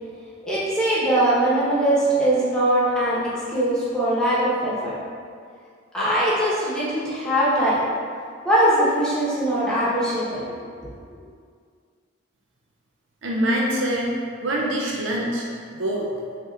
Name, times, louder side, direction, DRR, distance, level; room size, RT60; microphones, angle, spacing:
voice 1, 0.4-4.9 5.9-7.8 8.4-10.7 11.0-11.1, right 1 dB, 5° left, -10 dB, 0.9 m, -21 dB
voice 2, 13.2-14.1 14.4-15.5 15.8-16.1, right 1 dB, 75° right, -2 dB, 0.5 m, -24 dB
6.2 x 2.9 x 2.4 m, 2.2 s
head